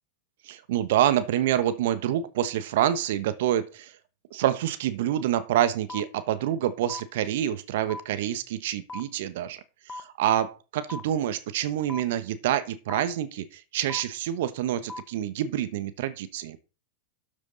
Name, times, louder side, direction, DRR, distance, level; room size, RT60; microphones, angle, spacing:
voice 1, 0.4-3.9 4.3-9.6 9.9-16.6, right 11 dB, 60° right, 12 dB, 1.2 m, -27 dB
sound 1, 5.9-6.0 6.9-7.0 7.9-8.0 8.9-9.0 9.9-10.0 10.9-11.0 11.9-12.0 12.9-13.0 13.9-14.0 14.9-15.0, left 2 dB, 15° left, 1.0 m, -36 dB
12.5 x 6.9 x 4.0 m, 0.33 s
figure-of-eight pair, 95°, 0 cm